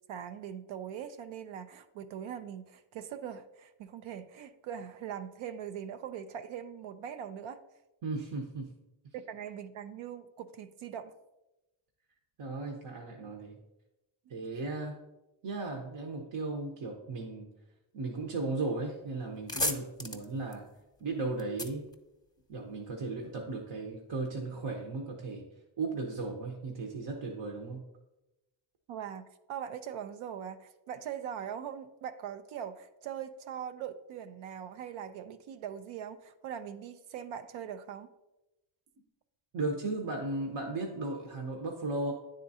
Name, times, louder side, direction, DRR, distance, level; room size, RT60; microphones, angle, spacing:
voice 1, 0.1-7.6 9.3-11.1 28.9-29.2 29.5-38.1, right 9 dB, 90° right, 9 dB, 0.6 m, -41 dB
voice 2, 8.0-8.7 12.4-13.6 14.3-15.0 15.4-17.5 17.9-20.7 21.0-21.9 22.5-25.4 25.8-27.8 39.5-42.1, right 3 dB, 65° right, 1 dB, 0.9 m, -36 dB
sound 1, 18.7-18.9 19.2-22.8, left 1 dB, 10° left, 0.8 m, -37 dB
9.3 x 3.8 x 2.7 m, 0.96 s
supercardioid pair, 50°, 46 cm